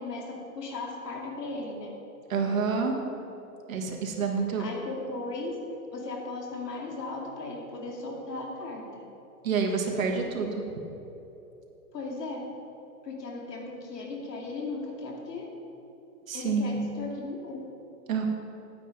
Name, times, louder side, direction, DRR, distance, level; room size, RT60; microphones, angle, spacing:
voice 1, 0.0-1.9 4.6-5.6 5.9-9.0 11.9-12.4 13.0-15.5 16.3-17.6, left 3 dB, 85° left, 0 dB, 2.7 m, -37 dB
voice 2, 2.3-3.0 3.7-4.7 9.4-10.6 16.3-16.8 18.1-18.3, right 5 dB, 55° right, 0 dB, 1.7 m, -28 dB
9.4 x 9.2 x 5.2 m, 3.0 s
hypercardioid pair, 175°, 47 cm